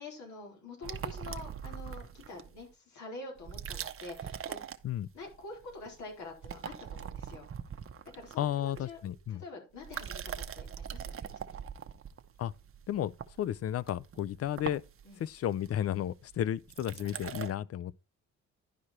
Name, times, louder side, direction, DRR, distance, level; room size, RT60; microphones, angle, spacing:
voice 1, 0.0-4.6 5.1-7.5 8.1-9.0 9.3-11.6 15.0-15.3, left 3 dB, 70° left, 4.4 m, -47 dB
sound 1, 0.8-2.6 3.4-5.3 5.6-6.0 6.3-9.3 9.8-17.5, right 8 dB, 45° right, 0.9 m, -42 dB
voice 2, 8.4-9.4 12.4-12.5 12.9-14.8 15.2-18.0, left 11 dB, 50° left, 0.5 m, -33 dB
11.0 x 4.9 x 4.3 m
cardioid pair, 90°, 30 cm